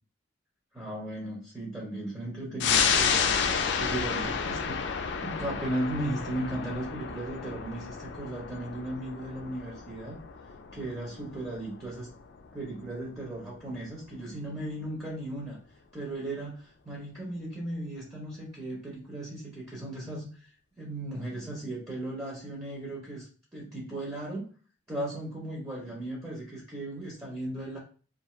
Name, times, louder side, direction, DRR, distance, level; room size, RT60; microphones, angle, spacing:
voice 1, 0.7-4.8 5.2-10.2 10.7-12.1 12.5-15.6 15.9-20.5 20.8-24.5 24.9-27.8, right 1 dB, 15° right, -4 dB, 0.6 m, -36 dB
sound 1, 2.6-13.6 14.0-14.1, left 6 dB, 60° left, 0.4 m, -31 dB
2.4 x 2.4 x 3.0 m, 0.39 s
head